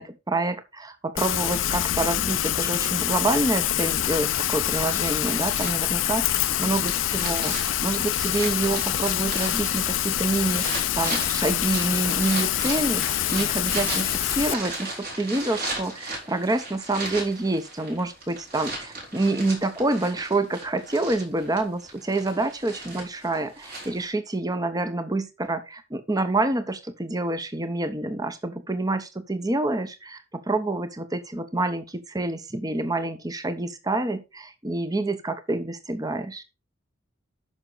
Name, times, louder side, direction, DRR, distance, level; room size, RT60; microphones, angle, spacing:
voice 1, 0.0-36.4, right 2 dB, 20° right, 10 dB, 1.0 m, -27 dB
Rain, 1.2-14.5, left 12 dB, 80° left, 0.5 m, -26 dB
sound 1, 4.7-24.1, right 2 dB, 50° right, 3.9 m, -37 dB
9.6 x 6.2 x 4.0 m, 0.26 s
head